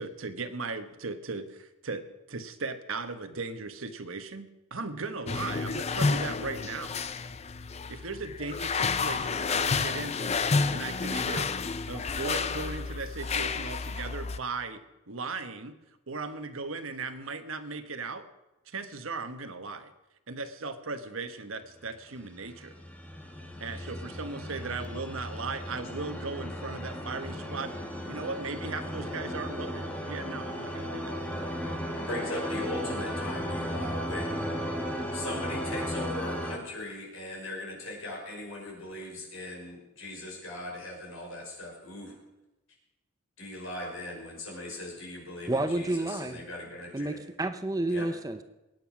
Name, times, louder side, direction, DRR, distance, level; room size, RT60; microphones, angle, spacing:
voice 1, 0.0-2.0 2.3-7.0 7.9-11.5 11.9-15.8 16.1-18.3 18.7-19.9 20.3-22.7 23.6-27.7 28.1-31.2, right 3 dB, 80° right, 9 dB, 1.3 m, -37 dB
sound 1, 5.3-14.4, left 4 dB, 30° left, 0.5 m, -30 dB
sound 2, 22.2-36.6, equal, 5° left, 1.5 m, -35 dB
voice 2, 32.0-42.1 43.4-47.2 47.9-48.1, left 1 dB, 75° left, -1 dB, 5.6 m, -39 dB
voice 3, 45.4-46.4 46.9-48.4, right 2 dB, 15° right, 9 dB, 0.7 m, -30 dB
21.0 x 9.2 x 6.1 m, 1.0 s
head